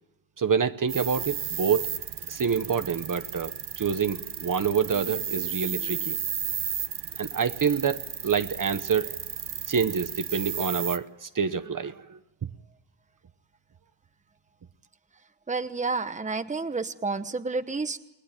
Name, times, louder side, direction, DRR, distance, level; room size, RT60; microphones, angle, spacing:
voice 1, 0.4-1.9 2.3-6.2 7.2-9.1 9.7-12.2, right 6 dB, 45° right, 10 dB, 1.0 m, -27 dB
sound 1, 0.9-11.0, right 8 dB, 65° right, 1.2 m, -34 dB
voice 2, 15.5-18.0, right 3 dB, 15° right, 9 dB, 1.0 m, -30 dB
29.5 x 20.5 x 9.0 m, 0.99 s
wide cardioid pair, 150°, 44 cm